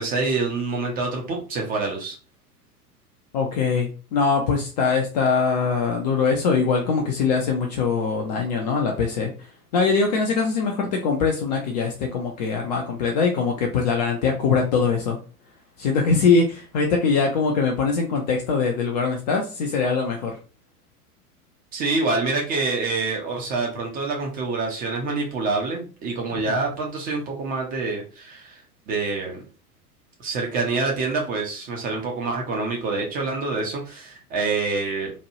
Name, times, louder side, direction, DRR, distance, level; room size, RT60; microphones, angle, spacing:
voice 1, 0.0-2.2 21.7-28.6 28.9-29.4 30.2-35.1, right 3 dB, 20° right, 0 dB, 0.6 m, -26 dB
voice 2, 3.3-9.3 9.7-15.2 15.8-20.4 26.3-26.6, left 5 dB, 30° left, 1 dB, 0.4 m, -22 dB
3.0 x 2.2 x 2.7 m, 0.35 s
figure-of-eight pair, 90°, 46 cm